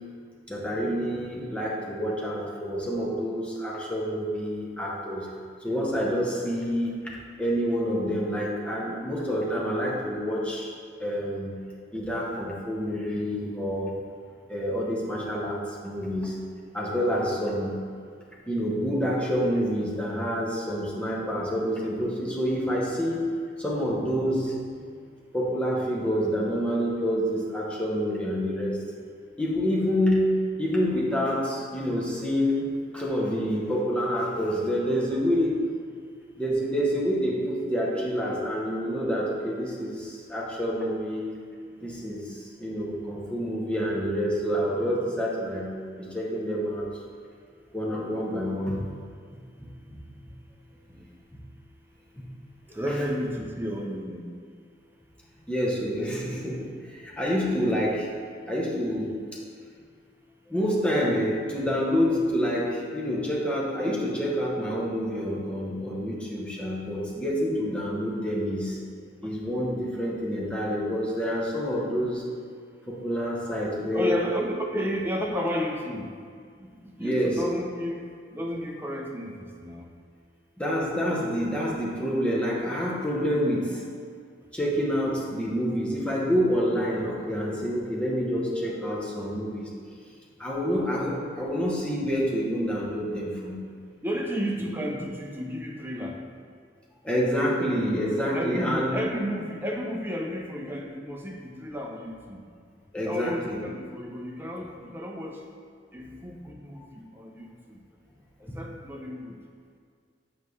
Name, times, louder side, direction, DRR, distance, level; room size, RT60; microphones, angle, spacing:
voice 1, 0.5-5.3 5.6-7.0 7.4-10.7 11.0-11.6 11.9-14.0 14.5-16.3 16.7-17.8 18.5-23.3 23.6-24.5 25.3-28.8 29.4-32.7 32.9-35.6 36.4-41.3 41.8-45.7 46.0-46.9 47.7-48.8 49.9-50.0 52.2-52.3 55.5-58.1 58.5-59.1 60.5-68.8 69.2-72.2 72.9-74.3 77.0-77.4 80.6-83.8 84.5-89.7 90.4-93.6 97.0-99.0 102.9-103.6 106.8-106.9 108.5-108.6, equal, 5° left, -5 dB, 1.0 m, -27 dB
voice 2, 52.7-54.2 69.2-69.3 73.9-76.1 77.0-78.0 78.3-79.8 83.2-83.3 94.0-96.2 98.2-102.4 103.0-105.4 105.9-106.8 107.2-107.8 108.5-109.3, equal, 10° right, 0 dB, 0.6 m, -32 dB
7.4 x 5.4 x 3.2 m, 2.1 s
head